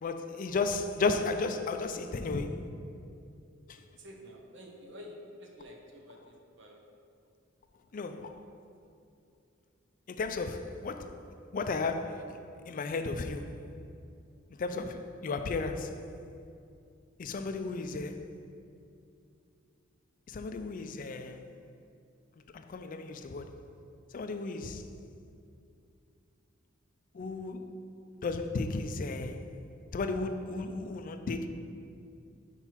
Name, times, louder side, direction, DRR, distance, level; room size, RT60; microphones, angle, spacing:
voice 1, 0.0-2.7 3.7-3.8 7.9-8.4 10.1-13.7 14.6-16.1 17.2-18.3 20.3-21.5 22.5-23.6 24.1-24.9 27.1-27.9 28.2-29.5 29.9-31.5, left 3 dB, 45° left, 0.4 m, -34 dB
voice 2, 3.8-6.8, equal, 65° right, 0.9 m, -50 dB
4.5 x 4.4 x 5.7 m
head